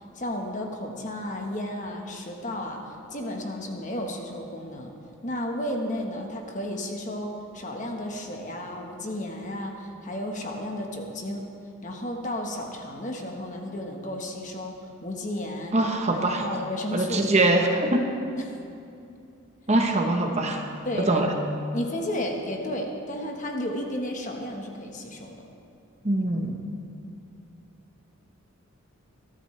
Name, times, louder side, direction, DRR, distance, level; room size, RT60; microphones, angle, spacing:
voice 1, 0.1-2.8 3.1-4.9 5.2-11.5 11.8-15.8 16.1-17.4 18.4-18.5 20.8-21.1 21.7-25.5, left 1 dB, 35° left, 2 dB, 1.3 m, -33 dB
voice 2, 15.7-16.4 16.9-18.0 19.7-20.7 21.1-21.3 26.0-26.5, right 2 dB, 30° right, 3 dB, 1.0 m, -23 dB
21.5 x 13.0 x 3.3 m, 2.6 s
head